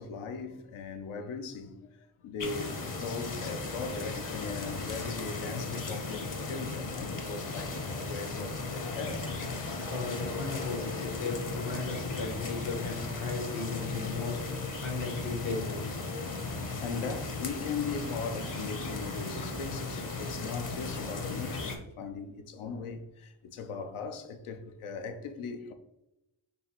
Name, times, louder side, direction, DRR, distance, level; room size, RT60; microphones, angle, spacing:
voice 1, 0.0-7.8 8.1-9.3 12.3-12.4 16.4-25.7, left 5 dB, 85° left, 0.6 m, -39 dB
sound 1, 2.4-21.8, left 3 dB, 40° left, 0.8 m, -36 dB
voice 2, 9.9-14.4 14.8-15.9 16.1-16.2, left 4 dB, 70° left, 1.2 m, -36 dB
4.5 x 3.1 x 2.9 m
cardioid pair, 45°, 48 cm